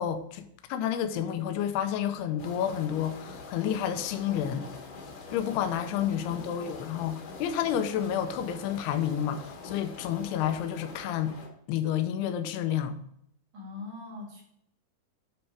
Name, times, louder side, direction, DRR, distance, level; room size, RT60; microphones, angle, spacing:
voice 1, 0.0-4.7 5.3-11.4 11.7-13.0, left 9 dB, 80° left, 2.7 m, -30 dB
sound 1, 2.4-11.5, left 4 dB, 60° left, 1.9 m, -44 dB
voice 2, 13.5-14.4, left 3 dB, 55° right, 3.2 m, -42 dB
11.5 x 4.2 x 4.7 m
omnidirectional pair, 4.6 m